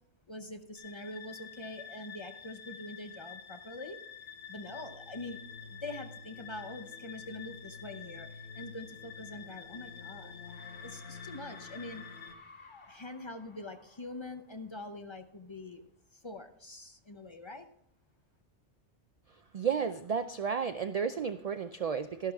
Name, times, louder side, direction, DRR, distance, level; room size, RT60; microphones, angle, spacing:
voice 1, 0.3-4.0 4.5-10.4 10.8-12.0 12.9-15.9 16.1-17.7, left 2 dB, 30° left, 7 dB, 0.7 m, -44 dB
sound 1, 0.8-12.3, left 6 dB, 75° left, 1.2 m, -47 dB
sound 2, 9.8-10.1 10.4-15.0, left 3 dB, 45° left, 1.4 m, -56 dB
voice 2, 19.5-22.3, right 7 dB, 65° right, 11 dB, 0.3 m, -32 dB
12.5 x 11.0 x 3.5 m, 0.69 s
omnidirectional pair, 1.2 m